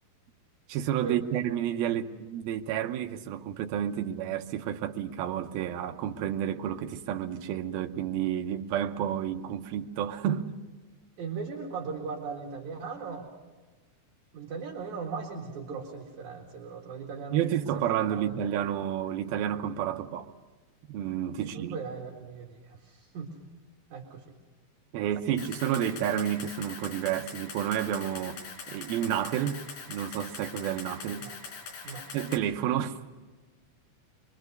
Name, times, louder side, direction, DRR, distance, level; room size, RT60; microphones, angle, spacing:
voice 1, 0.7-10.6 17.3-20.3 20.9-21.8 24.9-28.4 28.7-31.3 31.8-33.0, right 10 dB, 75° right, 2.7 m, -30 dB
voice 2, 11.2-13.3 14.3-17.6 18.1-18.4 21.4-23.3 23.9-24.4 25.3-25.4 31.2-31.4 31.8-32.1, right 5 dB, 55° right, 3.1 m, -38 dB
Camera, 25.4-32.4, left 5 dB, 75° left, 5.3 m, -42 dB
24.5 x 24.0 x 6.6 m
omnidirectional pair, 4.4 m